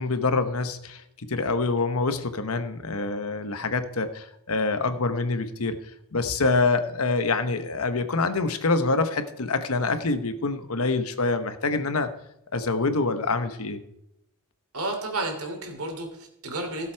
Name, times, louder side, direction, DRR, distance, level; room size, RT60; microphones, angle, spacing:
voice 1, 0.0-5.8 6.1-12.1 12.5-13.8, left 3 dB, 80° left, 10 dB, 1.0 m, -26 dB
voice 2, 14.7-16.9, right 2 dB, 90° right, 3 dB, 2.8 m, -32 dB
16.5 x 7.4 x 4.6 m, 0.81 s
head